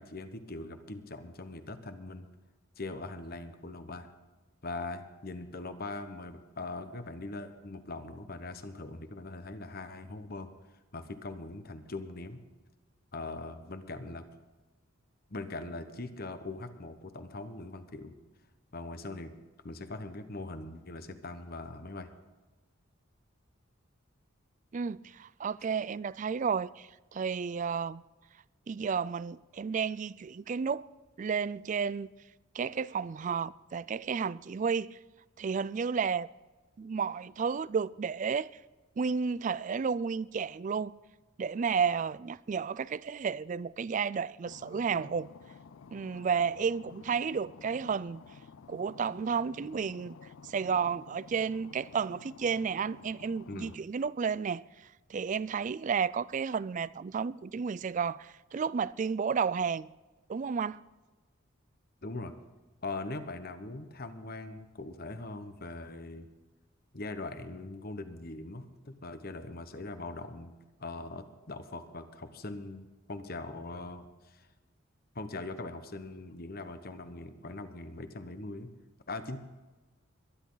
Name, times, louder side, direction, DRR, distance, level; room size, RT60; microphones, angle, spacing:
voice 1, 0.0-2.3 2.8-4.1 4.6-10.5 10.9-12.4 13.1-14.2 15.3-18.1 18.7-19.3 19.6-22.1 53.5-53.8 62.0-62.3 62.8-66.3 66.9-70.5 70.8-74.5 75.1-78.7 79.1-79.4, left 2 dB, 50° left, 1.2 m, -41 dB
voice 2, 24.7-28.0 28.7-30.9 31.2-32.1 32.5-35.0 35.4-36.3 36.8-38.5 39.0-40.9 41.4-45.3 45.9-48.2 48.7-50.2 50.4-54.6 55.1-59.9 60.3-60.8, right 6 dB, 40° right, 0.3 m, -32 dB
sound 1, 44.4-53.8, left 5 dB, 85° left, 0.4 m, -52 dB
23.0 x 10.5 x 4.0 m
head